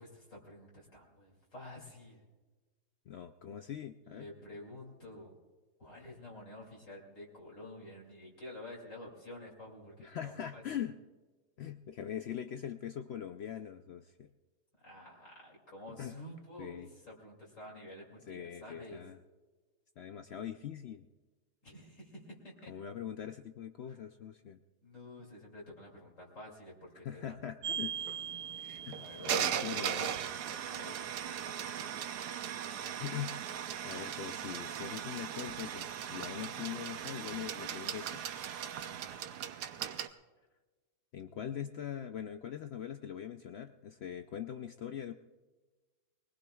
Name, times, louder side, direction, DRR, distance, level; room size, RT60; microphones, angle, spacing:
voice 1, 0.0-2.2 4.0-5.3 5.8-10.8 14.8-19.0 21.6-22.7 23.8-24.0 24.8-27.4 29.0-30.0 30.7-31.0 36.3-37.1 38.8-39.4, left 1 dB, 50° left, -3 dB, 3.0 m, -50 dB
voice 2, 3.1-4.3 10.0-11.0 11.6-14.3 15.9-16.2 16.6-16.9 18.3-19.2 20.0-21.1 22.7-24.6 27.0-28.0 28.8-30.1 32.7-33.4 33.8-38.2 41.1-45.1, left 9 dB, 80° left, 8 dB, 0.5 m, -42 dB
sound 1, 27.6-40.1, right 9 dB, 85° right, 1.3 m, -38 dB
23.5 x 19.0 x 2.3 m, 1.3 s
omnidirectional pair, 1.7 m